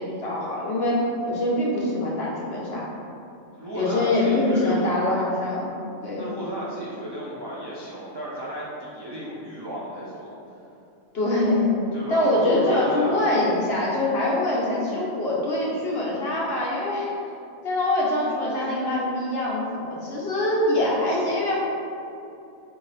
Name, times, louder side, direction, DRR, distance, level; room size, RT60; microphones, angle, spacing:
voice 1, 0.0-2.8 3.7-5.7 6.0-6.3 11.1-11.7 12.1-17.1 17.6-21.6, left 1 dB, 55° left, -5 dB, 1.0 m, -24 dB
voice 2, 3.5-5.2 6.2-10.5 11.9-13.2, equal, 35° right, -8 dB, 0.4 m, -34 dB
4.7 x 2.9 x 3.2 m, 2.8 s
omnidirectional pair, 1.3 m